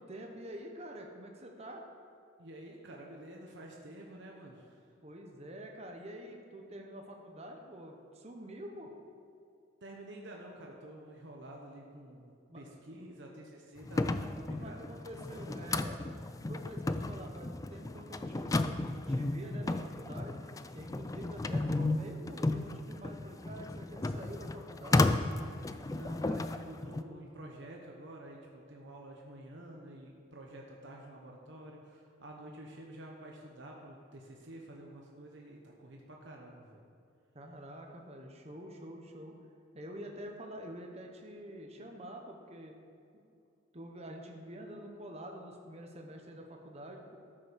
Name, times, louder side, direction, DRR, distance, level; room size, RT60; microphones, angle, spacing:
voice 1, 0.0-1.8 5.0-8.9 12.5-13.0 14.4-16.0 16.5-20.4 20.7-25.2 37.3-39.3 39.7-42.7 43.7-47.2, equal, 35° right, 2 dB, 1.1 m, -47 dB
voice 2, 2.4-4.9 9.8-15.8 25.8-36.8, right 1 dB, 65° right, -1 dB, 1.2 m, -49 dB
sound 1, 13.8-27.0, left 2 dB, 15° left, 0.3 m, -34 dB
13.5 x 6.3 x 6.4 m, 2.4 s
head